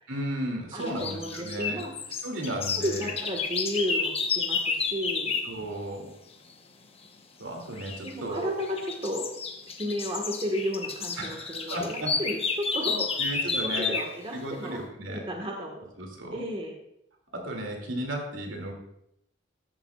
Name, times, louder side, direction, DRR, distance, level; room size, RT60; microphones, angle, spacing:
voice 1, 0.1-1.8 2.2-3.1 5.4-6.1 7.4-8.6 11.2-12.1 13.2-13.9 14.3-15.2 16.0-16.4 17.3-18.7, right 1 dB, 80° right, 1 dB, 2.5 m, -34 dB
voice 2, 0.7-1.9 2.7-5.4 8.0-9.3 9.7-15.9 16.3-16.8, equal, 30° right, 1 dB, 1.4 m, -33 dB
sound 1, 0.8-5.5 7.8-8.1 8.6-14.2, left 5 dB, 30° left, 0.9 m, -31 dB
14.0 x 11.0 x 2.4 m, 0.78 s
head